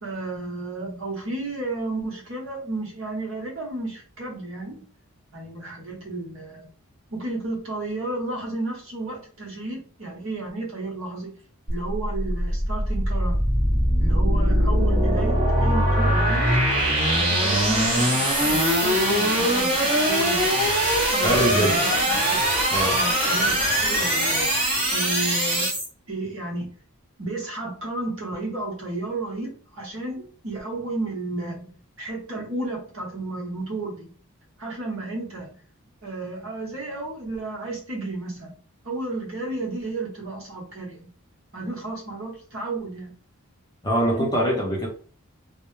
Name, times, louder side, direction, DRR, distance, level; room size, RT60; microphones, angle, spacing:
voice 1, 0.0-4.9 5.3-6.6 7.1-11.4 11.7-13.5 14.0-16.6 17.1-20.5 21.1-22.2 22.8-23.5 23.8-24.5 24.9-25.7 26.1-26.7 27.2-34.1 34.6-35.5 36.0-38.5 38.8-41.1 41.5-43.1 44.2-44.3, right 2 dB, 65° right, -2 dB, 0.9 m, -32 dB
sound 1, 11.7-25.9, equal, 25° right, 0.8 m, -21 dB
voice 2, 21.2-21.8 22.7-23.0 43.8-44.9, equal, 20° left, -2 dB, 0.6 m, -23 dB
2.2 x 2.0 x 3.0 m, 0.42 s
head